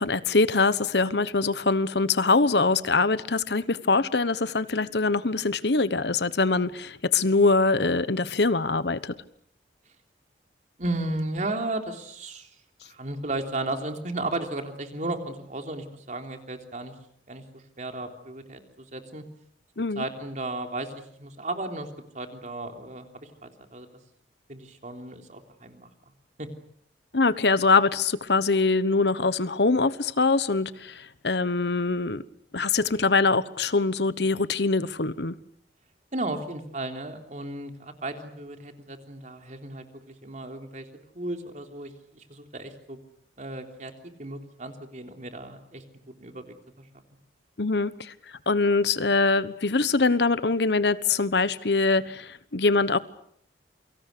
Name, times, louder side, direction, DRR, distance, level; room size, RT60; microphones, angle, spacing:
voice 1, 0.0-9.1 19.8-20.0 27.1-32.2 32.5-35.4 47.6-48.1 48.5-53.0, left 3 dB, 70° left, 1.1 m, -23 dB
voice 2, 10.8-12.5 12.8-16.9 17.3-19.2 19.9-21.9 22.1-23.9 24.5-25.9 26.4-26.5 36.1-40.9 41.1-43.0 43.4-43.9 44.2-45.8 46.2-46.9, right 2 dB, 45° right, 3.4 m, -34 dB
29.0 x 24.5 x 6.8 m
head